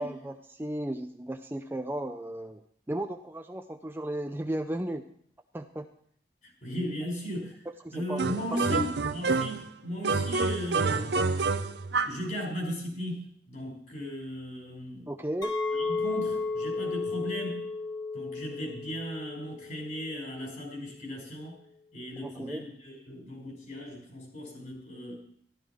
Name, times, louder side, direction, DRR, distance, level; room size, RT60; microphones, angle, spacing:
voice 1, 0.0-2.6 2.9-5.0 5.5-5.9 7.8-8.2 8.7-8.8 15.1-15.5 22.2-22.6, right 1 dB, 10° right, 6 dB, 0.5 m, -35 dB
voice 2, 6.6-7.6 7.9-11.2 12.0-15.1 15.7-17.7 18.1-21.6 21.9-25.1, equal, 45° left, 0 dB, 5.5 m, -36 dB
sound 1, 8.2-9.7 10.0-12.3, right 4 dB, 70° right, 0.6 m, -28 dB
Chink clink, 15.4-20.6, left 3 dB, 25° left, 2.2 m, -33 dB
13.0 x 13.0 x 4.6 m, 0.62 s
head